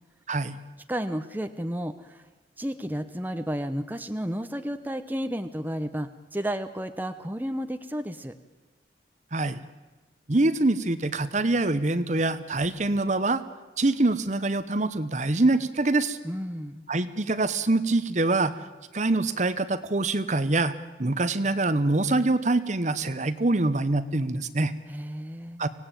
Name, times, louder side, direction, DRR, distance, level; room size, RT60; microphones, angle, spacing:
voice 1, 0.9-2.2 2.6-8.3 16.2-16.8 24.9-25.6, equal, 10° right, 7 dB, 0.9 m, -32 dB
voice 2, 10.3-13.4 13.8-16.2 16.9-18.6 18.9-20.7 21.0-24.7 25.6-25.7, right 2 dB, 40° right, 12 dB, 1.0 m, -24 dB
24.5 x 17.5 x 9.1 m, 1.2 s
head